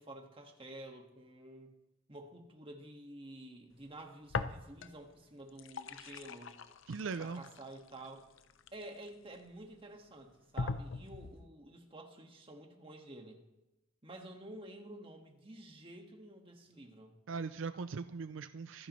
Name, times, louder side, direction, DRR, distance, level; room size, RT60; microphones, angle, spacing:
voice 1, 0.0-1.7 2.1-6.6 7.2-8.3 8.7-13.4 14.0-17.1, right 1 dB, 30° right, 2 dB, 1.7 m, -50 dB
sound 1, 4.3-5.1 5.4-9.4 9.9-10.0 10.6-11.5, left 4 dB, 85° left, 0.6 m, -41 dB
voice 2, 6.9-7.4 17.3-18.9, right 5 dB, 80° right, 12 dB, 0.5 m, -40 dB
25.5 x 10.0 x 3.2 m, 0.96 s
head